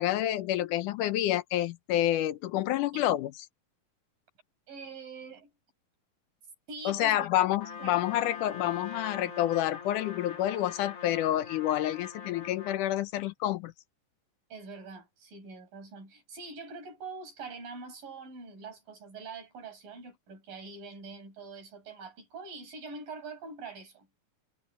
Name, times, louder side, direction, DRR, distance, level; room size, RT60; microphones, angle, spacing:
voice 1, 0.0-3.3 6.9-13.7, left 13 dB, 75° left, 2.2 m, -28 dB
voice 2, 4.7-5.5 6.7-7.5 7.8-8.0 14.5-24.1, right 4 dB, 80° right, 8.7 m, -44 dB
Trumpet, 7.6-12.9, left 6 dB, 45° left, 3.7 m, -43 dB
omnidirectional pair, 3.9 m